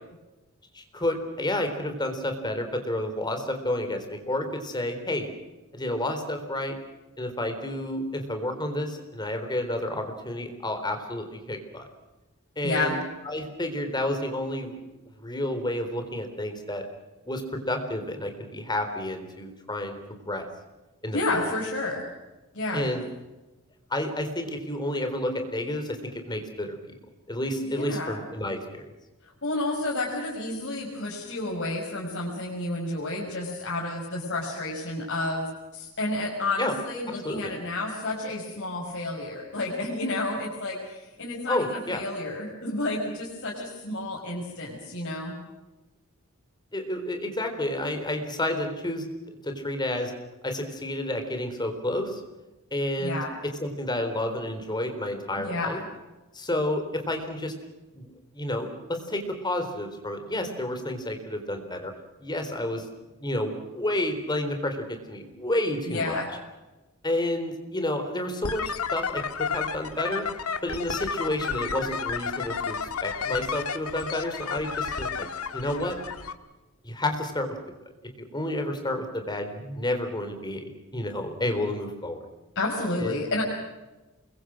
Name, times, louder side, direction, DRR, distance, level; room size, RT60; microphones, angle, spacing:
voice 1, 0.7-5.3 5.7-6.8 7.2-11.9 12.6-14.8 15.2-16.8 17.3-20.0 20.3-20.5 21.0-21.2 22.7-23.0 23.9-26.9 27.3-28.9 36.6-36.7 37.1-37.5 41.5-42.0 46.7-49.1 49.4-50.1 50.4-52.2 52.7-53.3 53.6-55.8 56.3-57.5 57.9-61.9 62.2-62.9 63.2-66.2 67.0-70.2 70.6-75.3 75.5-76.0 76.8-77.6 78.3-80.6 80.9-82.2 83.0-83.2, left 1 dB, 20° left, 6 dB, 3.9 m, -30 dB
voice 2, 12.6-13.0 21.1-22.0 22.5-22.9 27.6-28.2 29.4-45.3 53.0-53.3 55.4-55.8 65.9-66.3 82.6-83.4, left 2 dB, 60° left, -4 dB, 5.8 m, -30 dB
sound 1, 68.4-76.3, left 6 dB, 85° left, 1.7 m, -32 dB
28.5 x 22.5 x 6.3 m, 1.1 s
head